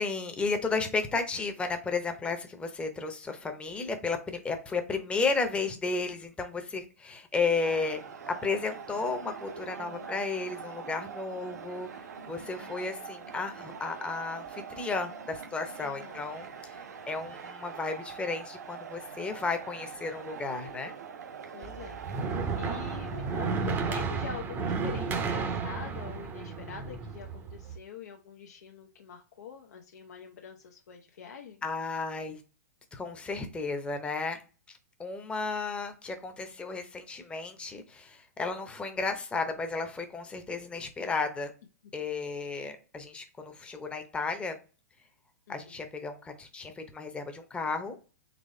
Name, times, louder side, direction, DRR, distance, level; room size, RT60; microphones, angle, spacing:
voice 1, 0.0-8.0 8.3-11.9 12.3-16.8 17.0-20.9 31.6-32.4 32.9-34.4 35.0-41.5 41.9-44.6 45.5-48.0, left 4 dB, 10° left, 6 dB, 0.7 m, -33 dB
sound 1, 7.6-24.0, right 6 dB, 80° right, 0.6 m, -44 dB
voice 2, 9.7-10.2 12.6-12.9 15.8-16.2 21.5-22.0 22.5-31.6 45.5-45.8, left 7 dB, 80° left, 2 dB, 0.6 m, -45 dB
sound 2, 21.6-27.8, right 4 dB, 20° right, 0.6 m, -33 dB
4.1 x 3.1 x 3.1 m, 0.35 s
hypercardioid pair, 130°, 9 cm